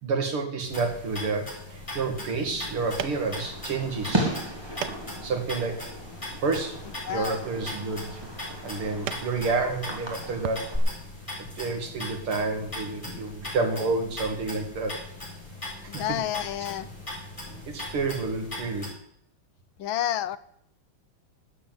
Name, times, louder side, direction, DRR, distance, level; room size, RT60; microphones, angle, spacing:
voice 1, 0.0-4.3 5.2-5.9 6.4-8.2 8.6-10.8 11.6-15.0 15.8-16.2 17.7-18.9, right 4 dB, 85° right, 5 dB, 3.2 m, -29 dB
sound 1, 0.6-18.9, left 2 dB, 15° left, 6.9 m, -40 dB
sound 2, 2.2-10.6, right 10 dB, 65° right, 1.2 m, -42 dB
Fireworks, 2.8-10.8, right 1 dB, 10° right, 3.1 m, -36 dB
voice 2, 7.0-7.5 15.9-16.9 19.8-20.4, left 12 dB, 75° left, 15 dB, 1.4 m, -30 dB
13.0 x 8.4 x 9.3 m, 0.71 s
omnidirectional pair, 2.3 m